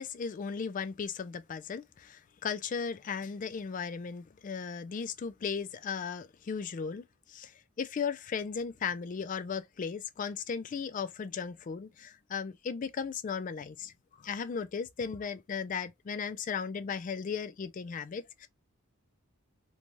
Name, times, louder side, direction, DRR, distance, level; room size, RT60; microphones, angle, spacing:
voice 1, 0.0-7.5 7.8-18.5, left 6 dB, 35° left, 0.3 m, -36 dB
2.6 x 2.2 x 3.0 m
head